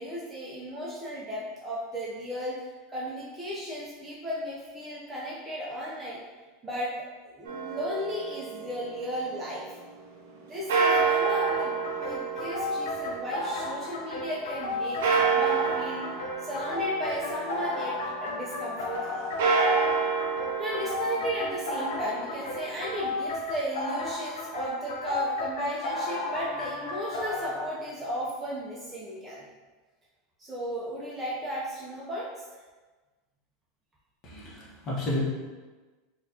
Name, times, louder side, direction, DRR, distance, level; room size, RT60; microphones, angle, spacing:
voice 1, 0.0-6.2 6.6-6.9 7.3-9.7 10.4-16.0 16.4-19.3 20.6-29.4 30.4-32.4, equal, 10° right, -6 dB, 0.4 m, -35 dB
sound 1, 7.5-9.5 10.7-14.1 15.0-18.0 19.2-23.2, right 5 dB, 85° right, 0.7 m, -29 dB
sound 2, 10.9-27.7, left 2 dB, 85° left, 0.6 m, -33 dB
voice 2, 34.2-35.2, left 1 dB, 30° left, -5 dB, 0.8 m, -32 dB
4.3 x 2.3 x 2.7 m, 1.3 s
supercardioid pair, 175°, 0 cm